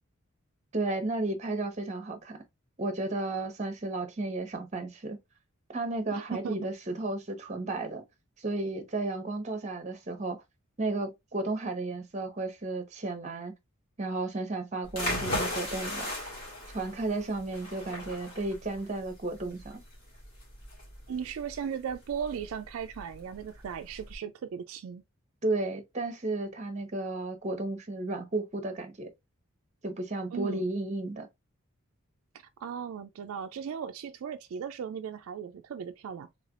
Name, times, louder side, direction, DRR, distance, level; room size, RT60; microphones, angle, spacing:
voice 1, 0.7-2.4 2.8-5.2 5.7-8.0 8.4-10.4 10.8-13.5 14.0-16.1 16.7-19.8 25.4-29.1 29.8-31.3, right 2 dB, 30° right, 0.8 m, -33 dB
voice 2, 6.1-6.6 21.1-25.0 30.3-30.6 32.6-36.3, right 7 dB, 70° right, 0.3 m, -37 dB
sound 1, 14.9-24.2, left 1 dB, 40° left, 1.8 m, -38 dB
3.6 x 3.2 x 2.4 m
head